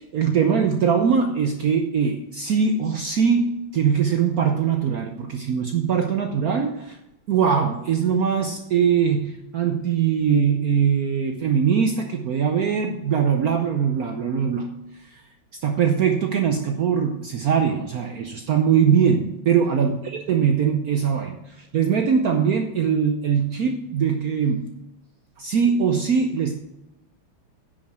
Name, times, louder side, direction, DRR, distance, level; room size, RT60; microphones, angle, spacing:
voice 1, 0.1-7.0 7.3-14.7 15.1-15.2 15.6-20.0 20.3-24.7 25.4-26.6, right 7 dB, 75° right, 5 dB, 0.8 m, -21 dB
10.0 x 6.2 x 6.1 m, 0.93 s
omnidirectional pair, 2.4 m